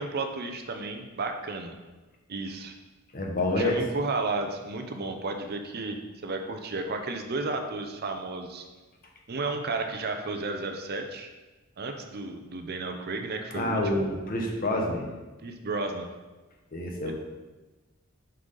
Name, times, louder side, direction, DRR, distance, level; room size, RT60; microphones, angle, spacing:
voice 1, 0.0-1.8 2.3-2.7 3.6-8.6 9.3-11.3 11.8-14.0 15.4-16.1 17.1-17.2, right 3 dB, 50° right, 5 dB, 0.6 m, -33 dB
voice 2, 3.1-3.8 13.5-15.1 16.7-17.1, left 1 dB, 45° left, 1 dB, 1.1 m, -27 dB
6.2 x 5.5 x 3.9 m, 1.2 s
head